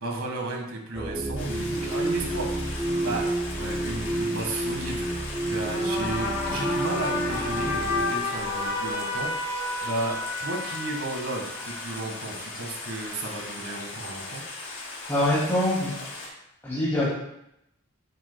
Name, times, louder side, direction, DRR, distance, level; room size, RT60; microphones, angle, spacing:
voice 1, 0.0-2.5 2.8-14.4, right 2 dB, 65° right, 1 dB, 1.7 m, -34 dB
sound 1, 0.9-8.1, right 1 dB, 10° right, 0.4 m, -30 dB
Stream, 1.4-16.3, left 2 dB, 85° left, 2.4 m, -39 dB
sound 2, 5.5-11.9, left 2 dB, 60° left, 2.1 m, -31 dB
voice 2, 15.1-16.0 16.6-17.1, left 1 dB, 10° left, -11 dB, 2.4 m, -24 dB
8.7 x 8.2 x 2.3 m, 0.82 s
head